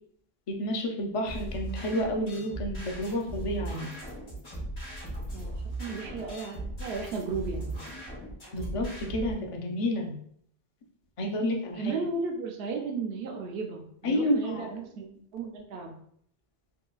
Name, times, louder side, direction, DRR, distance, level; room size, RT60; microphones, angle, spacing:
voice 1, 0.5-3.9 8.5-10.1 11.2-11.9 14.0-14.7, left 1 dB, 45° left, 1 dB, 0.5 m, -30 dB
sound 1, 1.2-9.3, right 1 dB, 75° left, 1.9 m, -38 dB
voice 2, 5.3-7.8 11.8-15.1 15.3-16.0, right 4 dB, 75° right, 3 dB, 0.8 m, -35 dB
3.8 x 2.3 x 2.3 m, 0.66 s
omnidirectional pair, 1.0 m